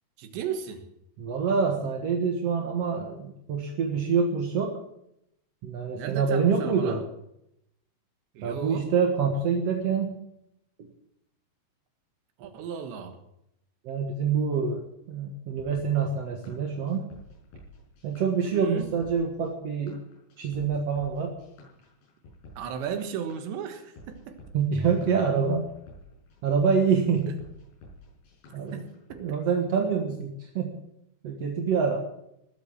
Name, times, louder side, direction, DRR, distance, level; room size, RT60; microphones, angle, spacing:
voice 1, 0.2-0.8 5.9-7.0 8.4-8.9 12.4-13.2 18.5-18.9 22.6-24.4 28.7-28.9, right 8 dB, 85° right, 7 dB, 3.8 m, -35 dB
voice 2, 1.2-4.7 5.6-7.0 8.4-10.2 12.4-12.5 13.8-14.8 15.1-17.0 18.0-20.0 20.4-21.3 24.5-25.6 26.4-27.3 28.5-28.8 29.1-30.7 31.2-32.0, right 6 dB, 60° right, 2 dB, 1.7 m, -26 dB
sound 1, 15.6-29.2, left 1 dB, 80° left, 8.7 m, -51 dB
19.5 x 8.3 x 7.4 m, 0.81 s
omnidirectional pair, 4.9 m